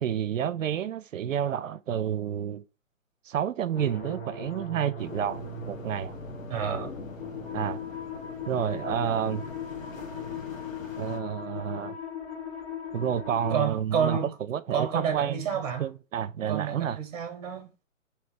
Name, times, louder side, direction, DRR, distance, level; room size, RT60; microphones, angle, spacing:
voice 1, 0.0-2.6 3.3-6.2 7.5-7.8 8.4-9.4 11.0-12.0 12.9-14.2 14.5-15.5 15.8-17.0, right 9 dB, 75° right, 0.5 m, -30 dB
sound 1, 3.7-13.7, left 5 dB, 30° left, 1.3 m, -39 dB
sound 2, 5.0-11.2, left 5 dB, 85° left, 0.9 m, -42 dB
voice 2, 6.5-6.9 13.5-14.3 14.7-15.9 16.5-17.8, right 7 dB, 30° right, 0.9 m, -29 dB
3.2 x 2.7 x 3.7 m
figure-of-eight pair, 135°, 39 cm